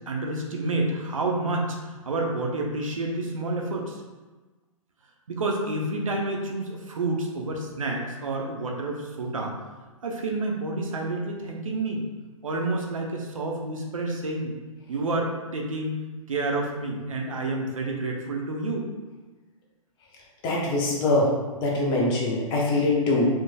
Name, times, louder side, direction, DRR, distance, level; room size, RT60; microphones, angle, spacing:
voice 1, 0.1-4.0 5.3-9.6 10.0-12.0 12.4-14.5 14.9-16.0 16.3-18.9, right 2 dB, 75° right, 0 dB, 0.7 m, -29 dB
voice 2, 20.4-21.3 21.6-23.3, left 2 dB, 25° left, -3 dB, 0.8 m, -23 dB
4.5 x 3.1 x 2.3 m, 1.2 s
figure-of-eight pair, 120°, 18 cm